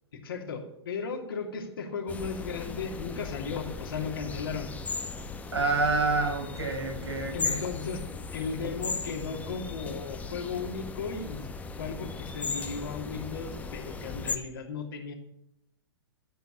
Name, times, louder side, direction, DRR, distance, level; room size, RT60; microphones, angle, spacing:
voice 1, 0.1-4.7 7.3-11.5 11.8-15.1, left 5 dB, 60° left, 2 dB, 2.8 m, -36 dB
sound 1, 2.1-14.4, left 4 dB, 10° left, 1.1 m, -37 dB
voice 2, 5.5-7.6, right 3 dB, 80° right, 0 dB, 5.2 m, -28 dB
14.0 x 8.1 x 7.5 m, 0.82 s
figure-of-eight pair, 110°, 14 cm